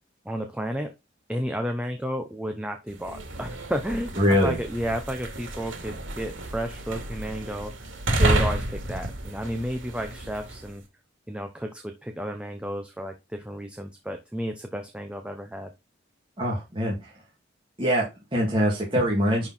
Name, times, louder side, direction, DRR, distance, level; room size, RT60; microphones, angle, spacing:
voice 1, 0.2-0.9 1.3-7.9 8.2-10.8 11.3-15.7, equal, 5° right, 5 dB, 0.8 m, -32 dB
sound 1, 2.9-10.7, right 1 dB, 85° right, 2.6 m, -30 dB
voice 2, 4.2-4.6 16.4-17.1 17.8-19.5, equal, 25° right, -4 dB, 2.6 m, -23 dB
11.0 x 4.6 x 4.4 m, 0.25 s
head